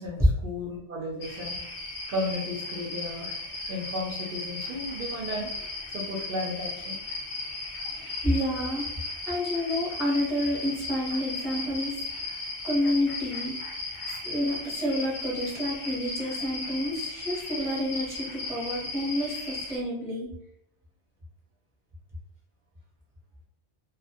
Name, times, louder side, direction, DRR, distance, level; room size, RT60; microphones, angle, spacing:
voice 1, 0.0-1.6 2.1-5.7 5.9-7.0 7.9-8.0, left 1 dB, 60° right, -3 dB, 0.6 m, -34 dB
sound 1, 1.2-19.8, left 2 dB, 45° left, 0.4 m, -36 dB
voice 2, 7.9-8.9 9.3-12.0 12.6-13.6 14.1-20.3, left 1 dB, 5° right, -6 dB, 0.6 m, -29 dB
2.1 x 2.1 x 2.8 m, 0.74 s
omnidirectional pair, 1.2 m